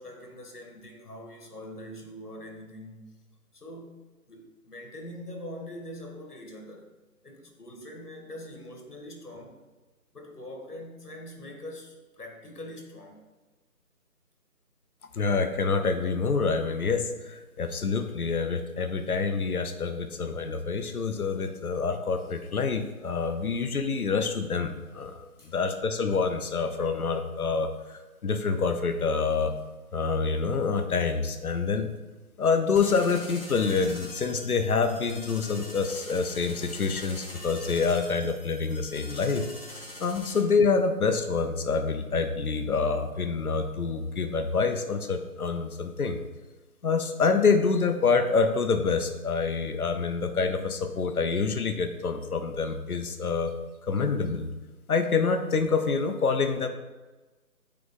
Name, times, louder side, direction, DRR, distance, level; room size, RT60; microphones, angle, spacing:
voice 1, 0.0-3.2 3.5-6.9 7.2-9.6 10.1-13.2 25.4-25.5, left 1 dB, 90° left, 2 dB, 1.8 m, -43 dB
voice 2, 15.1-29.5 29.9-31.9 32.4-39.5 40.0-46.2 46.8-53.5 53.8-54.5 54.9-56.7, left 4 dB, 70° left, 7 dB, 0.8 m, -27 dB
sound 1, 32.8-40.4, left 1 dB, 40° left, 1.3 m, -43 dB
8.5 x 3.5 x 3.7 m, 1.2 s
figure-of-eight pair, 170°, 45 cm